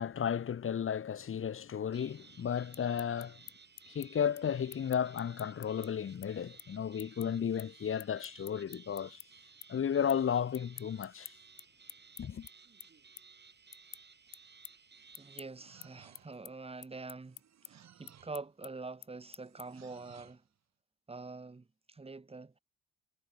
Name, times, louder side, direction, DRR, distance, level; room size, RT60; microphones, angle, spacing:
voice 1, 0.0-3.4 3.9-9.2 9.7-11.3 12.2-12.5, left 8 dB, 45° left, 1.4 m, -33 dB
sound 1, 1.9-15.4, right 5 dB, 35° right, 5.6 m, -58 dB
sound 2, 2.5-9.3 9.6-10.2 10.5-19.9, left 16 dB, 90° left, 1.7 m, -51 dB
sound 3, 14.9-16.5 17.2-18.5 19.4-20.5, right 9 dB, 60° right, 5.0 m, -60 dB
voice 2, 15.2-17.4 17.7-20.4 21.1-22.6, right 3 dB, 20° right, 1.8 m, -45 dB
cardioid pair, 90°, 30 cm